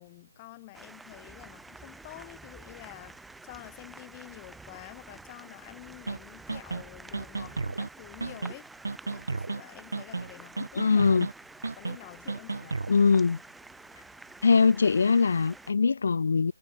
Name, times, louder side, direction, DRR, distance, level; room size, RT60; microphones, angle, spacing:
voice 1, 0.0-3.2 3.4-8.7 9.1-11.1 11.8-12.8, left 21 dB, 25° left, 3.2 m, -48 dB
sound 1, 0.7-15.7, right 2 dB, 5° right, 2.3 m, -49 dB
sound 2, 6.1-6.2 6.5-6.8 7.1-7.9 8.2-8.5 8.8-9.6 9.9-10.3 10.6-11.3 11.6-12.0 12.3-12.9, right 3 dB, 75° right, 4.2 m, -33 dB
voice 2, 10.8-11.3 12.9-13.4 14.4-16.5, left 5 dB, 60° left, 0.5 m, -22 dB
figure-of-eight pair, 155°, 0 cm